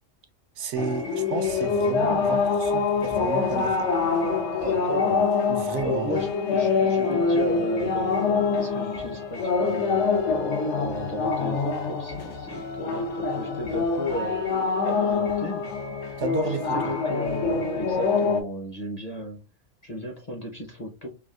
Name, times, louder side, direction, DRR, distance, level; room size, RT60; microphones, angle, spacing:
voice 1, 0.6-3.9 5.5-6.2 16.2-16.9, right 4 dB, 70° right, 0.9 m, -32 dB
sound 1, 0.8-18.4, left 4 dB, 75° left, 1.0 m, -25 dB
voice 2, 4.6-5.3 5.8-10.2 10.7-14.4 14.8-15.7 16.5-19.4 19.8-21.1, equal, 40° left, 0.6 m, -34 dB
3.4 x 2.3 x 2.3 m
omnidirectional pair, 1.3 m